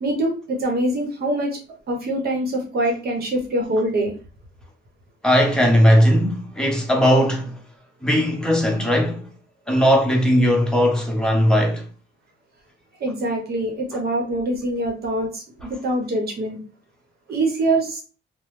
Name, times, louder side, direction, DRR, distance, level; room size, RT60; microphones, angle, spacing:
voice 1, 0.0-1.5 1.9-4.2 13.0-16.6 17.3-18.0, right 1 dB, 50° right, 0.9 m, -24 dB
voice 2, 5.2-7.6 8.0-9.3 9.7-11.8, equal, 5° left, 0.9 m, -18 dB
3.0 x 2.0 x 3.1 m
cardioid pair, 90°, 20 cm